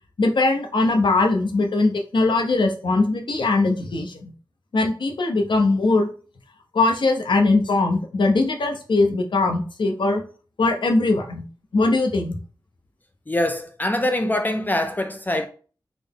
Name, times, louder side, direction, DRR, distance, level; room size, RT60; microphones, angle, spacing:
voice 1, 0.2-4.3 4.7-6.1 6.7-10.2 10.6-11.4 11.7-12.4, left 3 dB, 70° left, 0.7 m, -20 dB
voice 2, 13.3-15.5, left 1 dB, 20° left, 0.3 m, -23 dB
3.8 x 2.0 x 3.6 m
wide cardioid pair, 70°, 8 cm